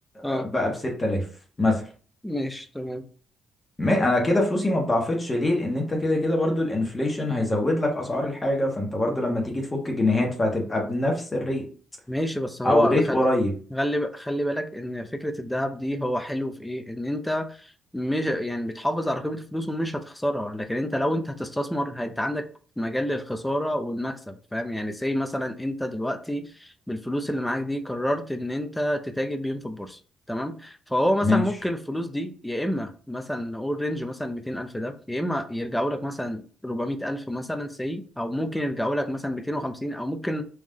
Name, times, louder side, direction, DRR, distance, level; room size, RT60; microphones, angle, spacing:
voice 1, 0.2-0.7 1.0-1.3 1.6-1.8 3.8-11.7 12.6-13.5 31.2-31.4, left 1 dB, 20° left, -1 dB, 1.3 m, -24 dB
voice 2, 2.2-3.0 12.1-13.2 13.7-22.5 22.8-30.0 30.3-40.4, equal, 5° left, 7 dB, 0.6 m, -28 dB
3.7 x 3.1 x 3.8 m, 0.41 s
cardioid pair, 85°, 0 cm